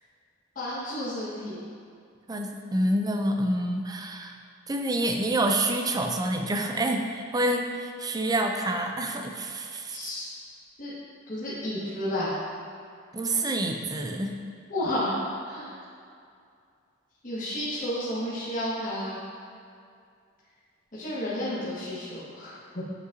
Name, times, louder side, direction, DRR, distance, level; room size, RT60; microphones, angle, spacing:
voice 1, 0.5-1.6 9.9-10.3 10.8-10.9 11.3-12.4 14.7-15.2 15.4-15.7 17.2-19.2 20.9-22.8, left 1 dB, 45° left, -10 dB, 1.4 m, -31 dB
voice 2, 2.3-4.3 4.7-10.0 13.1-14.3, right 1 dB, 20° right, 3 dB, 0.4 m, -27 dB
7.6 x 5.4 x 2.6 m, 2.3 s
head